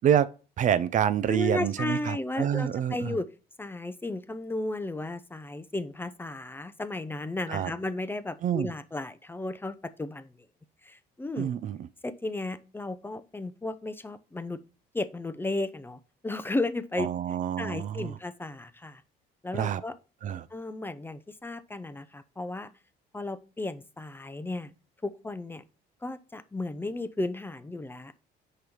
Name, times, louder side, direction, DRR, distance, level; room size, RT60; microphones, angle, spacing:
voice 1, 0.6-3.2 7.5-7.7 8.4-8.7 11.4-11.9 17.0-18.1 19.5-19.8 20.2-20.5, right 9 dB, 50° right, 0.5 m, -27 dB
voice 2, 1.3-3.3 3.6-10.3 10.8-11.5 12.0-14.6 14.9-17.1 17.6-19.0 19.4-19.9 20.5-22.7 23.1-24.7 25.0-25.6 26.0-28.1, left 2 dB, 15° left, 0.5 m, -34 dB
5.0 x 4.5 x 5.3 m
cardioid pair, 110°, 17 cm